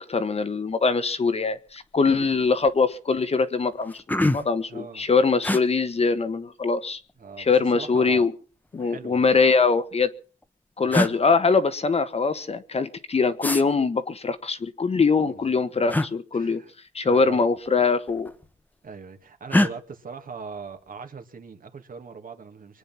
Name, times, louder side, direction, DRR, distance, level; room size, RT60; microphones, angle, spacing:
voice 1, 0.0-7.0 7.4-8.3 8.7-10.1 10.8-16.6 16.9-18.3, left 4 dB, 30° left, 1.4 m, -23 dB
sound 1, 1.7-2.0 2.3-2.8 3.3-3.4 3.7-4.6 5.4-5.6 6.9-7.5 8.7-9.5 10.4-10.5 10.9-11.2 13.4-13.6 15.9-16.1 17.5-17.7 18.0-18.6 19.5-19.7, left 1 dB, 10° left, 1.4 m, -25 dB
voice 2, 4.7-5.1 7.2-8.3 8.8-9.2 10.8-11.0 15.3-15.4 15.7-15.8 16.3-16.7 17.0-17.5 18.8-22.8, right 5 dB, 45° right, 2.5 m, -40 dB
25.0 x 9.2 x 5.9 m
cardioid pair, 90°, 20 cm